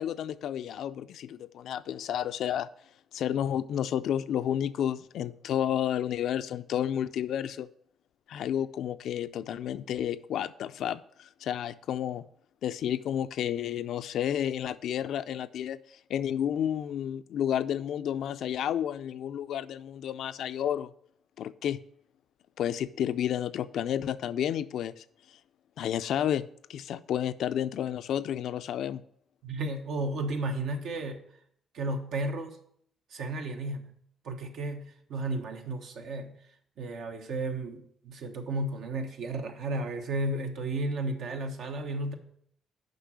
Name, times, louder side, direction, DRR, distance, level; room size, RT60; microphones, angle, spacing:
voice 1, 0.0-2.7 3.1-7.7 8.3-12.2 12.6-15.8 16.1-20.9 21.4-21.8 22.6-25.0 25.8-29.0, left 10 dB, 75° left, 0.4 m, -31 dB
voice 2, 29.4-31.2 31.7-32.6 33.1-33.9 34.2-36.4 36.8-42.1, right 2 dB, 75° right, 1.2 m, -33 dB
6.8 x 5.3 x 6.2 m
cardioid pair, 90°, 0 cm